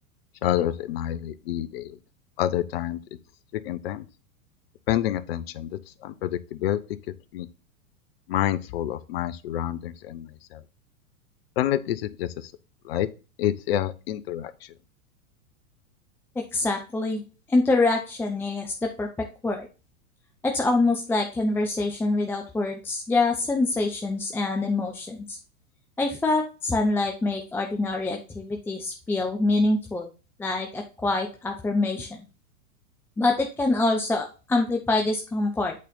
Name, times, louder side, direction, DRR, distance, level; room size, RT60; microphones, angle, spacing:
voice 1, 0.4-2.0 2.4-3.0 3.5-4.1 4.9-6.8 7.3-7.5 8.3-10.6 11.6-12.5 12.8-13.1 13.4-14.5, left 12 dB, 45° left, 14 dB, 0.7 m, -28 dB
voice 2, 16.4-17.2 17.5-19.1 19.4-19.7 20.4-25.4 26.0-30.1 30.4-32.3 33.2-35.7, left 2 dB, 5° left, 2 dB, 0.6 m, -25 dB
8.5 x 4.1 x 3.9 m, 0.32 s
figure-of-eight pair, 95°, 43 cm